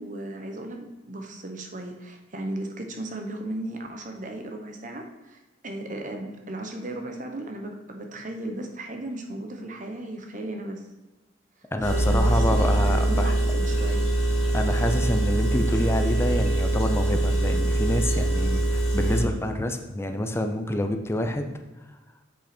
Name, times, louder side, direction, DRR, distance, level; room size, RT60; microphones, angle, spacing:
voice 1, 0.0-10.8 11.9-14.1, right 1 dB, 40° right, 4 dB, 1.0 m, -35 dB
voice 2, 11.7-13.3 14.5-21.6, left 1 dB, 15° left, 5 dB, 0.6 m, -27 dB
Engine, 11.8-19.2, right 1 dB, 35° left, 2.7 m, -23 dB
7.8 x 6.1 x 4.4 m, 1.1 s
head